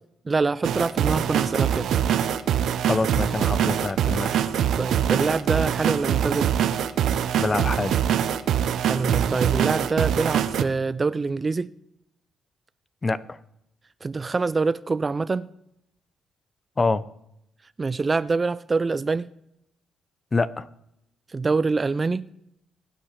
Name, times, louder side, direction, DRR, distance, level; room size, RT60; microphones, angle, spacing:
voice 1, 0.3-1.9 4.8-6.5 8.9-11.7 14.0-15.5 17.8-19.3 21.3-22.3, right 4 dB, 30° right, 0.4 m, -25 dB
sound 1, 0.6-10.6, right 9 dB, 75° right, 0.7 m, -23 dB
voice 2, 2.8-4.4 7.4-8.0 13.0-13.4 16.8-17.0 20.3-20.7, left 3 dB, 25° left, 0.6 m, -25 dB
23.0 x 8.8 x 3.3 m
cardioid pair, 90°, 0 cm